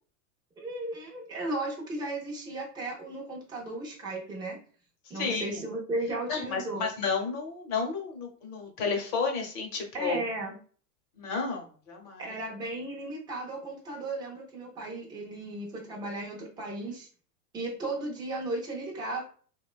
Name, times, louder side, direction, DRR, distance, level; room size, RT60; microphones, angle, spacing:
voice 1, 0.6-4.6 5.1-6.9 9.9-10.6 12.2-17.1 17.5-19.2, right 2 dB, 10° right, -2 dB, 0.4 m, -35 dB
voice 2, 5.2-5.6 6.3-10.2 11.2-12.3, left 5 dB, 40° left, 2 dB, 0.8 m, -32 dB
2.9 x 2.2 x 2.3 m, 0.43 s
hypercardioid pair, 120°, 48 cm